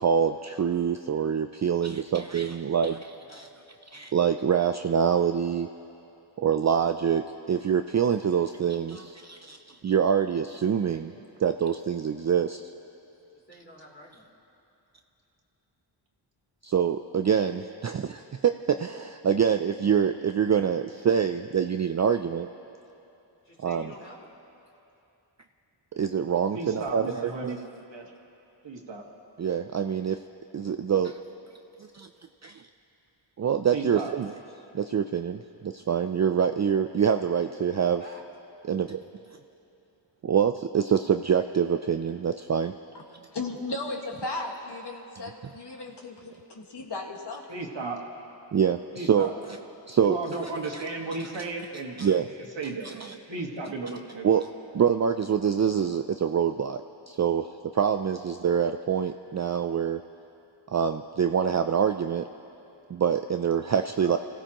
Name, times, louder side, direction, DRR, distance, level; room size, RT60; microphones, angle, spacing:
voice 1, 0.0-3.5 3.9-5.7 6.4-9.6 9.8-11.1 11.4-12.6 16.6-22.5 23.6-23.9 26.0-27.6 29.4-30.2 30.5-31.2 31.9-32.1 32.4-32.6 33.4-34.3 34.7-38.0 38.7-39.0 40.2-42.7 48.5-49.3 49.9-50.2 50.7-50.8 52.0-52.3 52.8-53.1 54.2-54.5 54.7-56.8 57.1-57.5 57.7-60.0 60.7-62.3 62.9-64.2, right 7 dB, 40° right, 7 dB, 0.4 m, -25 dB
voice 2, 13.3-14.3 23.4-24.3 37.8-38.2, left 1 dB, 25° left, -4 dB, 3.2 m, -49 dB
voice 3, 26.5-27.6 27.9-28.1 28.6-29.0 33.7-34.1 47.5-48.0 48.9-49.3 50.0-51.9 52.6-54.3 64.0-64.2, right 3 dB, 65° right, 0 dB, 1.8 m, -34 dB
voice 4, 43.3-47.5, left 2 dB, 60° left, 0 dB, 1.8 m, -35 dB
28.0 x 16.0 x 3.0 m, 2.8 s
wide cardioid pair, 80°, 46 cm